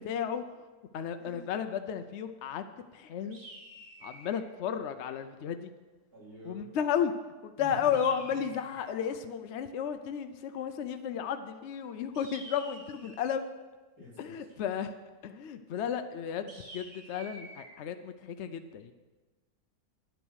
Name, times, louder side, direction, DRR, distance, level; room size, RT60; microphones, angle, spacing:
voice 1, 0.0-0.7 0.9-2.6 2.9-3.4 4.0-5.7 6.4-7.1 7.4-13.5 14.2-14.9 15.2-18.9, left 8 dB, 65° left, 8 dB, 0.7 m, -33 dB
sound 1, 3.3-4.5 7.9-8.9 12.1-13.4 16.5-17.7, right 1 dB, 60° right, 2.3 m, -49 dB
voice 2, 6.1-6.6 7.6-7.9 14.0-14.1, left 2 dB, 75° right, -7 dB, 4.8 m, -47 dB
9.8 x 9.1 x 6.3 m, 1.3 s
omnidirectional pair, 1.6 m